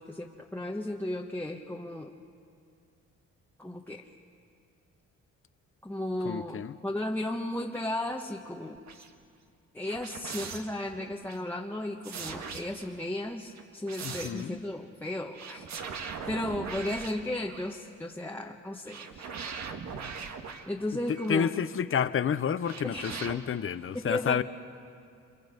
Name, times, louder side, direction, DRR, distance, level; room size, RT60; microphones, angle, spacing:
voice 1, 0.0-2.2 3.6-4.0 5.8-8.8 9.7-15.7 15.9-19.3 20.7-21.5 22.8-23.1 24.0-24.4, left 1 dB, 5° left, -1 dB, 1.3 m, -35 dB
voice 2, 6.2-6.8 14.0-14.6 21.1-24.4, left 7 dB, 45° left, 13 dB, 0.9 m, -30 dB
sound 1, 8.8-9.1 9.8-11.4 12.0-13.1 13.6-14.5 15.3-17.8 18.9-21.4 22.6-23.4, right 5 dB, 65° right, 1.7 m, -41 dB
30.0 x 26.0 x 5.3 m, 2.4 s
cardioid pair, 90°, 30 cm